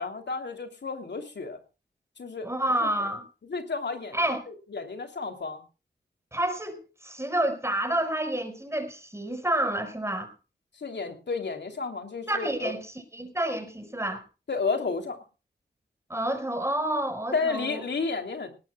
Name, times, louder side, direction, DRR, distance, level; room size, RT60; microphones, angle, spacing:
voice 1, 0.0-1.6 2.2-2.5 2.8-3.1 3.4-4.2 4.5-5.6 10.7-12.7 14.5-15.2 17.3-18.5, left 4 dB, 70° left, 6 dB, 3.0 m, -32 dB
voice 2, 2.4-3.2 4.1-4.4 6.3-10.3 12.3-14.2 16.1-17.8, right 1 dB, 15° right, 7 dB, 4.8 m, -29 dB
19.0 x 19.0 x 2.3 m, 0.31 s
cardioid pair, 45°, 19 cm